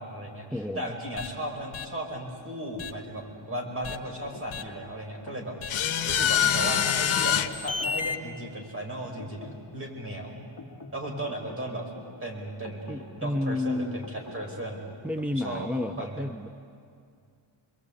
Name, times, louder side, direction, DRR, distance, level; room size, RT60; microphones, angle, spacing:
voice 1, 0.0-10.3 10.9-11.9 12.2-14.9 15.4-15.7 16.0-16.2, right 1 dB, 25° right, 1 dB, 5.2 m, -36 dB
voice 2, 0.5-1.0 6.4-6.9 12.9-14.1 15.0-16.5, left 2 dB, 5° right, 5 dB, 0.5 m, -31 dB
sound 1, 1.2-1.3 1.7-1.9 2.8-2.9 3.8-4.0 4.5-4.6 5.6-8.2, left 8 dB, 75° left, 1.3 m, -26 dB
sound 2, 3.9-14.9, left 3 dB, 40° left, 2.1 m, -48 dB
27.5 x 22.0 x 8.4 m, 2.3 s
wide cardioid pair, 140°, 48 cm